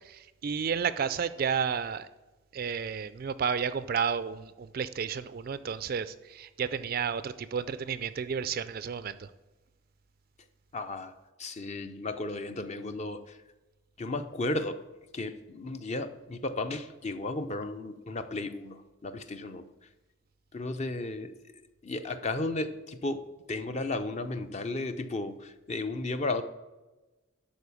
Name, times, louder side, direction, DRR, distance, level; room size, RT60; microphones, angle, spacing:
voice 1, 0.0-2.1 2.5-9.3, right 6 dB, 45° right, 14 dB, 0.3 m, -32 dB
voice 2, 10.7-11.1 11.4-13.4 14.0-14.8 15.1-19.7 20.5-21.3 21.8-23.2 23.5-26.4, left 2 dB, 35° left, 9 dB, 0.6 m, -34 dB
11.5 x 4.2 x 7.1 m, 1.1 s
head